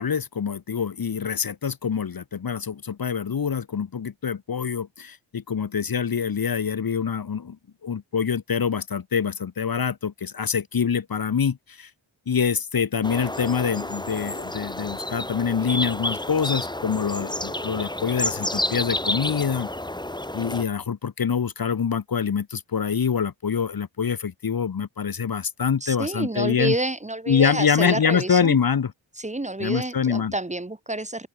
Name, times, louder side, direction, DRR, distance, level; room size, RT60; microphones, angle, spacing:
voice 1, 0.0-7.6 7.8-11.9 12.3-19.7 20.3-26.8 27.3-28.9 29.6-30.3, left 6 dB, 45° left, 1.4 m, -25 dB
sound 1, 13.0-20.6, left 1 dB, 10° left, 3.5 m, -30 dB
voice 2, 25.8-28.6 29.2-31.3, right 2 dB, 15° right, 1.4 m, -29 dB
open air
wide cardioid pair, 115°, 48 cm